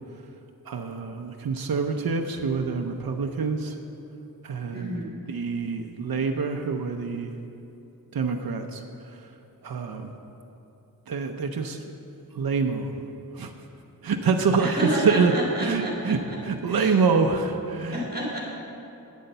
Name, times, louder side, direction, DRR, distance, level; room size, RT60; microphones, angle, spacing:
voice 1, 0.7-3.8 4.4-5.0 5.3-7.4 8.1-9.3 9.6-10.1 11.1-11.8 12.3-13.0 13.3-13.5 14.0-15.3 15.6-18.0, right 5 dB, 70° right, 4 dB, 0.7 m, -26 dB
voice 2, 4.7-5.2 14.6-15.9 16.3-16.4 16.7-16.9 17.9-18.4, equal, 25° right, -5 dB, 2.2 m, -29 dB
9.2 x 8.5 x 6.7 m, 2.9 s
wide cardioid pair, 80°, 37 cm